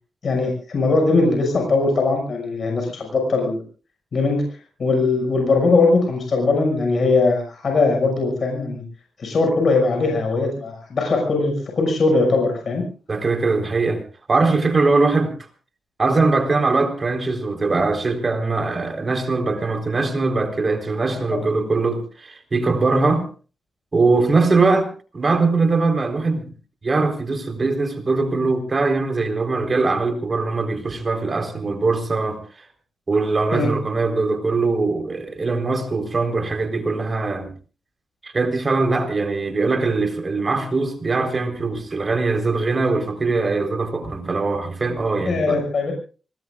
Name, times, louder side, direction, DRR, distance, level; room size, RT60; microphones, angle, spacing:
voice 1, 0.2-3.6 4.1-4.4 4.8-8.8 9.2-12.8 21.1-21.4 33.5-33.7 45.3-45.9, left 3 dB, 60° left, 2 dB, 6.2 m, -20 dB
voice 2, 13.1-14.0 14.3-15.3 16.0-23.2 23.9-24.9 25.1-26.5 26.8-32.7 33.1-37.5 38.2-45.6, right 3 dB, 40° right, 6 dB, 4.1 m, -21 dB
26.5 x 19.5 x 2.5 m, 0.36 s
cardioid pair, 65°, 0 cm